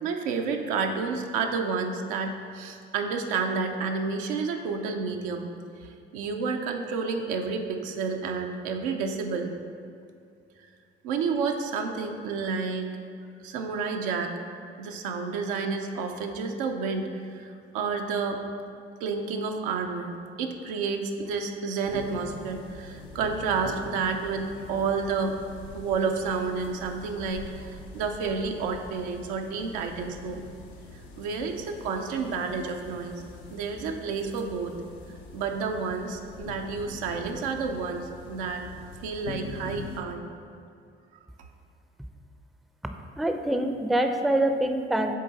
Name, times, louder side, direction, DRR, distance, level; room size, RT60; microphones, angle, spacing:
voice 1, 0.0-5.5 5.8-9.5 11.0-12.9 13.4-14.4 14.8-17.1 17.3-18.4 19.0-25.4 25.7-30.5 31.2-33.2 33.5-34.8 35.3-38.6 39.0-40.2, right 5 dB, 85° right, 3 dB, 0.6 m, -30 dB
sound 1, 21.8-40.0, left 4 dB, 80° left, 0.7 m, -44 dB
voice 2, 43.2-45.2, right 1 dB, ahead, 6 dB, 0.4 m, -25 dB
6.4 x 3.8 x 4.0 m, 2.4 s
hypercardioid pair, 50°, 29 cm